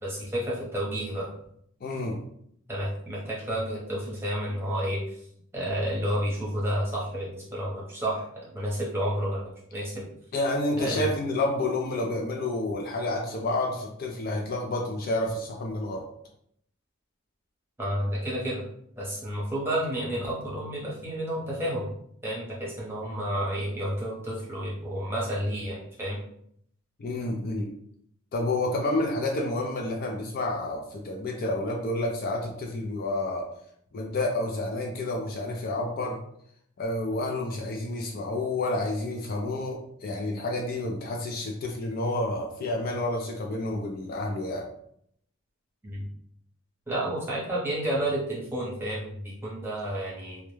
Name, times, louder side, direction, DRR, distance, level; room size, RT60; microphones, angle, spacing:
voice 1, 0.0-1.3 2.7-5.0 5.5-10.0 10.8-11.0 17.8-18.6 19.0-21.9 22.2-26.2 45.8-46.1 46.9-50.4, right 1 dB, 10° right, -7 dB, 0.8 m, -30 dB
voice 2, 1.8-2.2 10.3-16.1 27.0-27.7 28.3-33.5 33.9-36.2 36.8-44.7, left 2 dB, 45° left, 0 dB, 0.4 m, -29 dB
2.2 x 2.1 x 3.0 m, 0.69 s
head